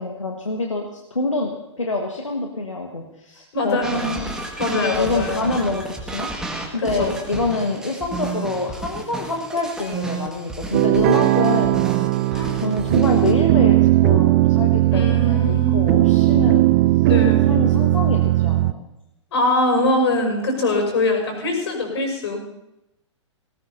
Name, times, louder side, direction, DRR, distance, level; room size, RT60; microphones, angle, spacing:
voice 1, 0.0-4.3 4.8-6.3 6.7-11.8 12.5-16.7 17.5-18.9, left 3 dB, 90° left, 1 dB, 1.6 m, -26 dB
voice 2, 3.5-4.2 4.6-5.5 6.8-7.1 12.3-12.5 14.9-16.0 17.0-17.4 19.3-22.5, left 1 dB, 60° left, 2 dB, 5.9 m, -22 dB
sound 1, 3.8-13.3, right 3 dB, 5° right, 1.8 m, -32 dB
sound 2, 10.7-18.7, right 17 dB, 35° right, 0.4 m, -17 dB
18.5 x 18.0 x 2.8 m, 0.86 s
figure-of-eight pair, 115°, 16 cm